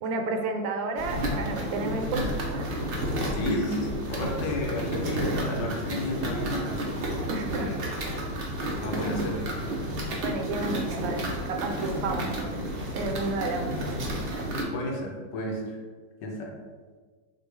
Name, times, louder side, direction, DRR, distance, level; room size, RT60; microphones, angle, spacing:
voice 1, 0.0-2.7 7.3-7.7 10.2-12.6 12.9-14.0, right 3 dB, 90° right, 5 dB, 1.3 m, -31 dB
sound 1, 1.0-14.6, right 1 dB, 55° right, 0.6 m, -31 dB
voice 2, 3.3-6.9 7.4-7.8 8.7-9.4 12.2-12.3 14.7-15.8 16.2-16.5, left 1 dB, 75° left, 0 dB, 1.5 m, -32 dB
6.3 x 2.4 x 3.3 m, 1.5 s
omnidirectional pair, 1.9 m